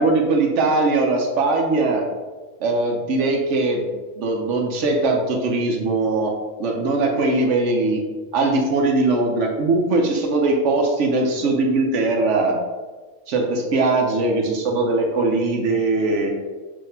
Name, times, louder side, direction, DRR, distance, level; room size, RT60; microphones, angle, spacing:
voice 1, 0.0-2.0 2.6-3.9 4.2-6.3 6.6-8.0 8.3-12.6 13.3-16.3, right 3 dB, 75° right, 1 dB, 1.0 m, -20 dB
5.4 x 2.8 x 2.8 m, 1.3 s
omnidirectional pair, 1.3 m